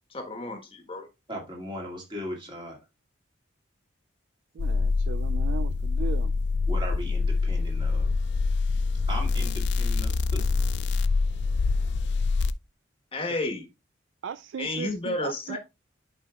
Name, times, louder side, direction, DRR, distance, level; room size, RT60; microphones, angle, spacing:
voice 1, 0.1-1.1 13.1-13.7 14.6-15.6, left 2 dB, 25° left, 1.3 m, -31 dB
voice 2, 1.3-2.8 6.7-8.1 9.1-10.5, equal, 25° right, 2.1 m, -38 dB
voice 3, 4.5-6.3 14.2-15.6, right 7 dB, 70° right, 0.3 m, -37 dB
sound 1, 4.6-12.5, left 4 dB, 60° left, 0.4 m, -25 dB
11.0 x 5.0 x 2.4 m
head